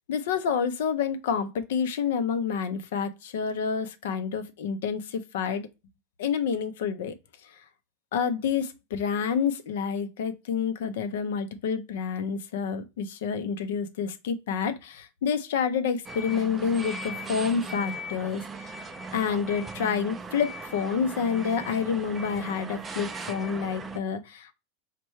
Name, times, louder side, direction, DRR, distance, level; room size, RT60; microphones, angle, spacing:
voice 1, 0.1-5.7 6.2-7.1 7.4-7.6 8.1-18.7 19.1-24.5, left 6 dB, 75° left, 0.5 m, -28 dB
sound 1, 16.1-24.0, right 2 dB, 15° right, 0.3 m, -38 dB
4.3 x 2.2 x 3.1 m
supercardioid pair, 120°, 0 cm